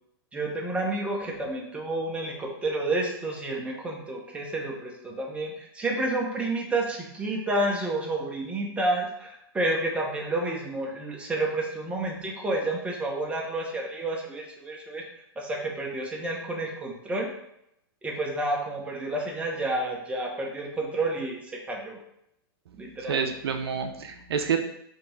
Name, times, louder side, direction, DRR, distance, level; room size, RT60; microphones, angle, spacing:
voice 1, 0.3-15.0 15.4-17.3 18.0-22.0 22.8-23.3, right 2 dB, 10° right, -1 dB, 0.8 m, -30 dB
voice 2, 22.7-24.6, right 7 dB, 75° right, 6 dB, 0.5 m, -29 dB
3.5 x 2.9 x 3.9 m, 0.77 s
hypercardioid pair, 115°, 13 cm